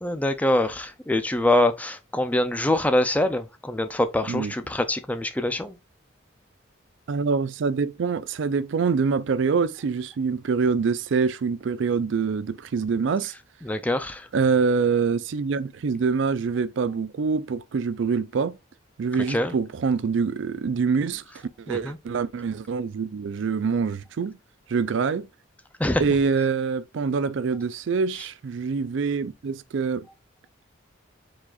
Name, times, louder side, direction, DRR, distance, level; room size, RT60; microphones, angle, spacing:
voice 1, 0.0-5.8 13.7-14.3 19.3-19.5 21.7-22.0 25.8-26.0, left 1 dB, 10° left, 0.5 m, -24 dB
voice 2, 7.1-13.3 14.3-18.6 19.0-21.2 21.6-24.4 24.7-25.3 26.0-30.1, right 5 dB, 65° right, 0.4 m, -25 dB
4.8 x 4.1 x 2.4 m
head